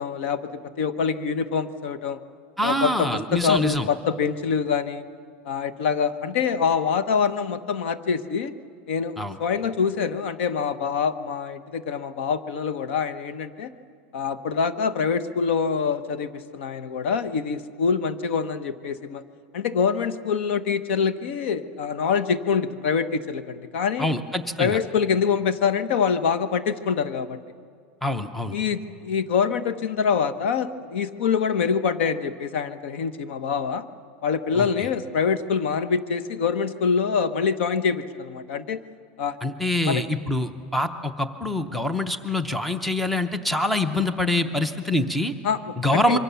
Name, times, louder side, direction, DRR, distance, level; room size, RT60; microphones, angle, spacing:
voice 1, 0.0-2.2 2.6-5.0 5.4-8.5 8.9-13.7 14.1-19.2 19.5-24.1 24.6-27.4 28.5-33.8 34.2-38.8 39.2-39.4 39.8-40.0 45.4-46.2, left 6 dB, 80° left, 12 dB, 1.1 m, -25 dB
voice 2, 2.6-3.9 9.2-9.4 24.0-24.8 28.0-28.6 34.6-34.7 39.4-45.3 45.8-46.2, left 1 dB, ahead, 9 dB, 0.6 m, -25 dB
26.5 x 23.5 x 7.0 m, 2.2 s
supercardioid pair, 180°, 6 cm